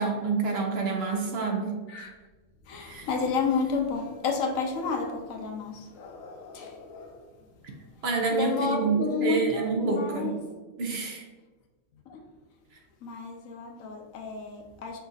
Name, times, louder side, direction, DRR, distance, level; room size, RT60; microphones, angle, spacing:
voice 1, 0.0-2.1 2.8-3.1 8.0-10.4 10.8-11.3, right 4 dB, 55° right, 0.8 m, -28 dB
voice 2, 2.7-7.2 8.3-10.3 12.1-12.2 13.0-15.0, left 4 dB, 85° left, 1.2 m, -31 dB
5.4 x 2.4 x 3.9 m
omnidirectional pair, 1.4 m